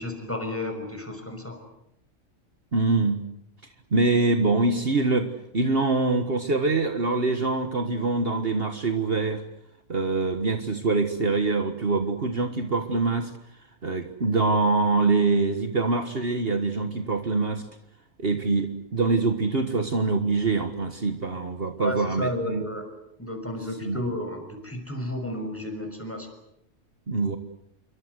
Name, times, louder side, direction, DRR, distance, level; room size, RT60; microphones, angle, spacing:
voice 1, 0.0-1.6 21.8-22.8 23.2-26.3, left 1 dB, 10° left, 5 dB, 6.2 m, -32 dB
voice 2, 2.7-3.2 3.9-9.4 9.9-13.3 13.8-17.7 18.2-22.6 23.8-24.0 27.1-27.4, right 3 dB, 50° right, 7 dB, 1.8 m, -24 dB
28.0 x 24.0 x 8.1 m, 0.78 s
omnidirectional pair, 1.3 m